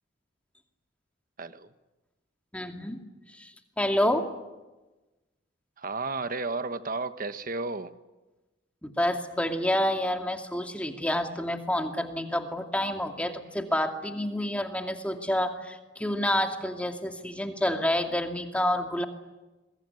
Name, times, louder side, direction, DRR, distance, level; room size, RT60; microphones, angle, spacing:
voice 1, 1.4-1.7 5.8-7.9, right 3 dB, 50° right, 11 dB, 1.3 m, -33 dB
voice 2, 2.5-3.0 3.3-3.5 3.8-4.3 8.8-19.1, left 1 dB, 5° left, 4 dB, 2.4 m, -28 dB
26.5 x 22.5 x 9.8 m, 1.1 s
head